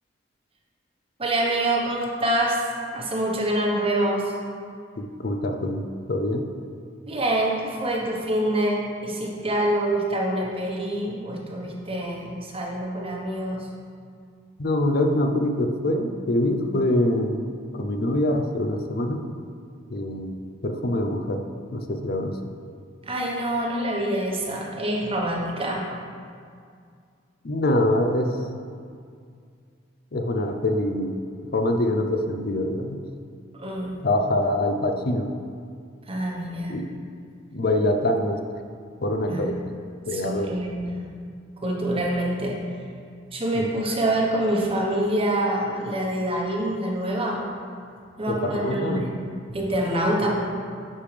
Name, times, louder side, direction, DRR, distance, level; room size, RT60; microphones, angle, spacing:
voice 1, 1.2-2.6 2.9-4.3 7.1-13.7 23.1-25.9 33.6-33.9 36.1-36.8 39.3-39.5 40.1-41.0 41.6-42.6 43.3-47.4 48.2-49.1 49.5-50.4, right 1 dB, 30° right, -2 dB, 1.1 m, -26 dB
voice 2, 5.0-6.4 14.6-17.4 17.7-19.2 19.9-20.4 20.6-21.4 21.7-22.4 27.4-28.3 30.1-31.2 31.5-33.0 34.0-35.3 36.7-36.9 37.5-38.4 39.0-39.7 40.1-40.5 43.6-43.7 48.3-49.0, left 1 dB, 55° left, 5 dB, 0.6 m, -24 dB
11.0 x 5.0 x 3.4 m, 2.2 s
head